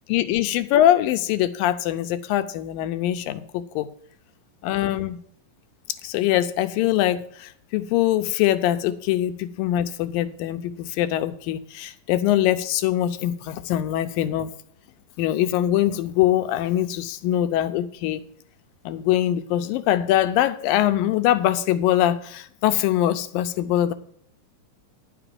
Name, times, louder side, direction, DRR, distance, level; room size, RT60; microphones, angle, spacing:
voice 1, 0.1-3.9 4.6-5.2 6.0-14.5 15.2-18.2 18.9-23.9, left 12 dB, 80° left, 11 dB, 2.4 m, -23 dB
10.5 x 6.0 x 7.3 m, 0.62 s
omnidirectional pair, 4.1 m